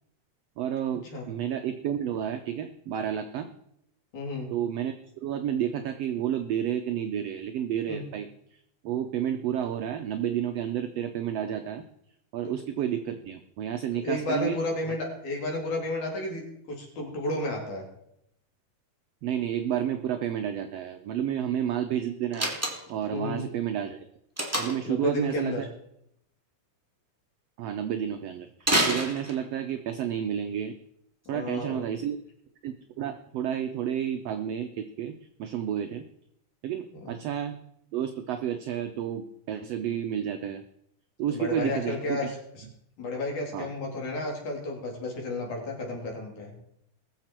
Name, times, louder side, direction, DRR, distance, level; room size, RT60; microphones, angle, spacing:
voice 1, 0.6-3.5 4.5-4.9 5.2-8.3 8.8-11.8 12.3-14.6 14.9-15.0 19.2-22.6 22.9-24.0 24.6-25.5 27.6-30.7 31.3-32.2 32.6-36.0 36.6-37.6 37.9-40.6 41.2-42.3 43.5-43.7, right 9 dB, 75° right, 7 dB, 1.5 m, -31 dB
voice 2, 4.1-4.5 7.9-8.0 14.0-17.9 23.1-23.5 24.8-25.7 31.3-31.8 37.0-37.2 41.3-42.6 43.0-46.5, left 2 dB, 70° left, -1 dB, 4.2 m, -32 dB
Slam, 22.3-23.1 24.4-24.9 28.6-29.7, right 1 dB, 5° right, 1.3 m, -27 dB
21.0 x 7.0 x 4.4 m, 0.75 s
omnidirectional pair, 3.6 m